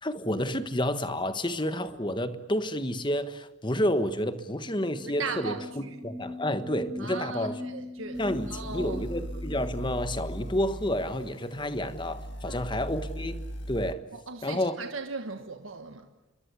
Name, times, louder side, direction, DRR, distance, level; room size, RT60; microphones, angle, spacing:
voice 1, 0.0-5.5 6.0-7.6 8.2-14.0 14.4-14.8, left 1 dB, 20° left, 1.4 m, -30 dB
sound 1, 4.6-10.4, left 2 dB, 15° right, 5.7 m, -41 dB
voice 2, 5.0-6.0 7.0-8.2 8.5-9.0 12.4-12.6 14.1-16.1, right 4 dB, 70° right, 1.4 m, -38 dB
sound 2, 8.1-13.9, equal, 55° left, 2.1 m, -39 dB
28.5 x 23.0 x 8.3 m
head